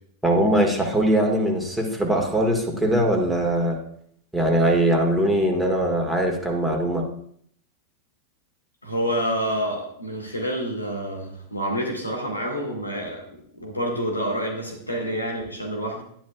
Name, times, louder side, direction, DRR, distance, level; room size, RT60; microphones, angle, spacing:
voice 1, 0.2-3.8 4.3-7.0, right 1 dB, 5° right, 0 dB, 1.9 m, -21 dB
voice 2, 8.8-16.0, equal, 85° left, 0 dB, 1.8 m, -28 dB
11.0 x 10.5 x 2.4 m, 0.65 s
figure-of-eight pair, 90°, 0 cm